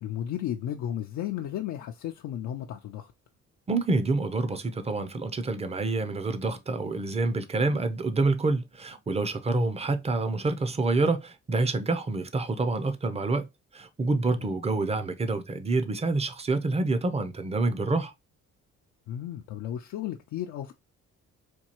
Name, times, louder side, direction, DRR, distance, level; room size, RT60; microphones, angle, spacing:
voice 1, 0.0-3.1 9.5-9.7 14.4-14.5 19.1-20.7, left 11 dB, 75° left, 0.5 m, -34 dB
voice 2, 3.7-13.5 13.7-18.1, right 3 dB, 20° right, 0.6 m, -27 dB
4.3 x 2.3 x 2.9 m
cardioid pair, 90°, 30 cm